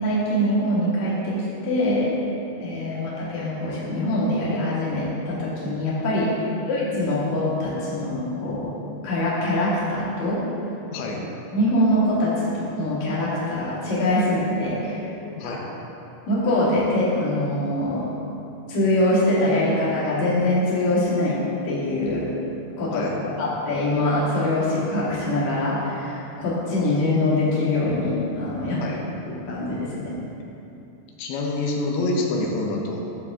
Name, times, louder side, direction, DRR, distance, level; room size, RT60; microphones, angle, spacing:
voice 1, 0.0-1.4 1.6-2.2 2.6-8.7 9.0-10.4 11.5-15.0 15.4-15.6 16.3-18.1 18.7-22.3 22.8-23.1 23.4-28.8 29.3-30.1, left 1 dB, 50° left, -8 dB, 2.9 m, -23 dB
voice 2, 10.9-11.2 15.2-15.6 22.9-23.2 28.8-29.0 31.2-33.0, left 2 dB, 90° left, 0 dB, 3.1 m, -27 dB
10.5 x 7.1 x 3.6 m, 2.9 s
omnidirectional pair, 4.9 m